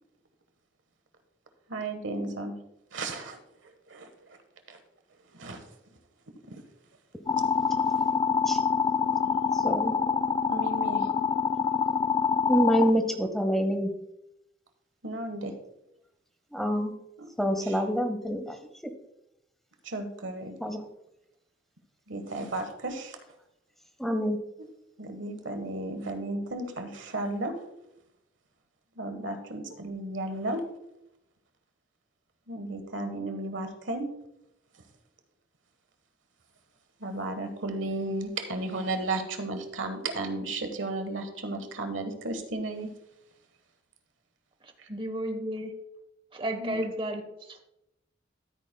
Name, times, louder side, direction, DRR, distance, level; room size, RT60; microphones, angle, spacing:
voice 1, 1.7-2.5 2.9-3.4 3.9-4.1 4.7-4.8 5.3-5.6 6.5-6.6 9.2-9.3 10.5-11.1 15.0-15.5 17.2-17.7 19.8-20.5 22.1-23.2 25.0-27.5 29.0-30.6 32.5-34.1 37.0-42.9 46.6-46.8, right 2 dB, 90° right, 7 dB, 1.3 m, -34 dB
sound 1, 7.3-12.9, left 6 dB, 25° left, 0.4 m, -26 dB
voice 2, 9.5-9.9 12.5-13.9 16.5-16.9 17.4-18.6 18.8-18.9 20.6-20.9 24.0-24.4, equal, ahead, 7 dB, 0.8 m, -26 dB
voice 3, 44.9-45.7 46.3-47.3, right 1 dB, 30° right, 7 dB, 1.1 m, -32 dB
12.5 x 9.0 x 2.2 m, 0.86 s
head